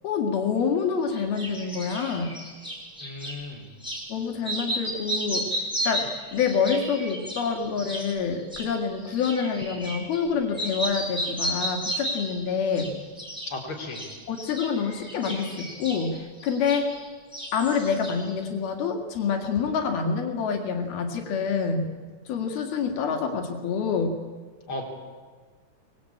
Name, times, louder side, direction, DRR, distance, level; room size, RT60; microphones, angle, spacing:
voice 1, 0.0-2.3 4.1-5.5 5.9-12.9 14.3-16.9 17.5-21.9 22.3-24.2, left 6 dB, 80° left, 3 dB, 4.0 m, -27 dB
sound 1, 1.1-3.4 3.8-4.1 4.4-10.3 10.5-12.4 12.7-13.5 13.8-17.1 17.3-18.3, equal, ahead, 5.8 m, -33 dB
voice 2, 3.0-3.7 13.5-14.0 24.7-24.8, left 2 dB, 35° left, 0 dB, 4.6 m, -35 dB
24.0 x 21.5 x 8.7 m, 1.4 s
omnidirectional pair, 4.4 m